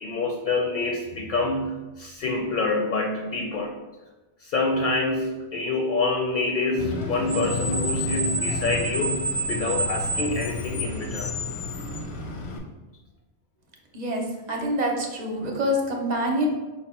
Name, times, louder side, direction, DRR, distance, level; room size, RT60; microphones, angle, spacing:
voice 1, 0.0-3.7 4.4-11.3, left 3 dB, 60° left, 2 dB, 0.6 m, -27 dB
Screech, 6.8-12.6, equal, 80° left, 1.0 m, -29 dB
voice 2, 13.9-16.5, equal, 45° right, 0 dB, 0.8 m, -26 dB
5.3 x 2.3 x 4.1 m, 1.1 s
omnidirectional pair, 1.1 m